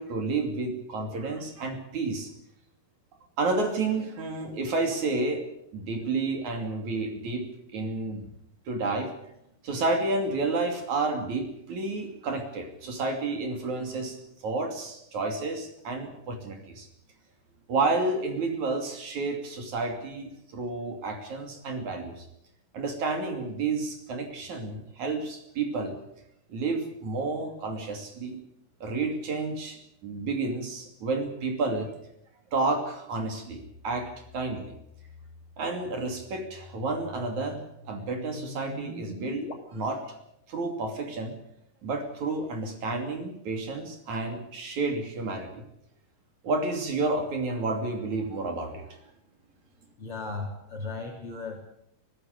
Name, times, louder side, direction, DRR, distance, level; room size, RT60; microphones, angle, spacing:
voice 1, 0.0-2.3 3.4-5.5 5.7-7.5 7.7-8.3 8.7-9.1 9.6-16.9 17.7-22.3 22.7-26.0 26.5-28.4 28.8-31.9 32.5-34.8 35.6-40.1 40.5-41.4 41.8-45.6 46.4-49.0, right 3 dB, 60° right, 4 dB, 4.0 m, -30 dB
sound 1, 33.6-39.5, left 2 dB, 80° left, 4.8 m, -45 dB
voice 2, 50.0-51.6, left 3 dB, 40° left, 0 dB, 4.0 m, -36 dB
23.5 x 15.5 x 8.3 m, 0.78 s
omnidirectional pair, 3.9 m